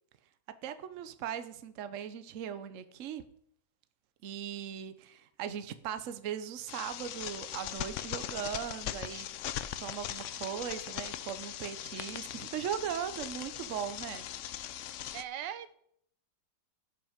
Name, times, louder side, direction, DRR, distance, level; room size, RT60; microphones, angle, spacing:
voice 1, 0.6-3.2 4.2-9.3 9.8-14.2, right 9 dB, 55° right, 11 dB, 1.0 m, -39 dB
sound 1, 6.7-15.2, left 11 dB, 75° left, 0.7 m, -40 dB
voice 2, 15.1-15.8, right 10 dB, 90° right, 13 dB, 1.4 m, -39 dB
16.0 x 6.0 x 5.1 m, 0.69 s
omnidirectional pair, 1.8 m